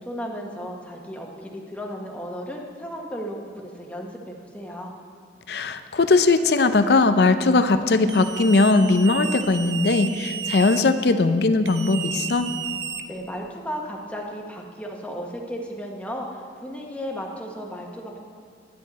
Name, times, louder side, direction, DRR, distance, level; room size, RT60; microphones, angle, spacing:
voice 1, 0.0-4.9 13.1-18.2, equal, 5° left, 0 dB, 1.1 m, -34 dB
voice 2, 5.5-12.5, left 3 dB, 65° left, 10 dB, 0.5 m, -19 dB
sound 1, 8.1-10.8 11.6-13.4, right 8 dB, 85° right, 0.6 m, -32 dB
10.5 x 10.0 x 4.1 m, 2.2 s
head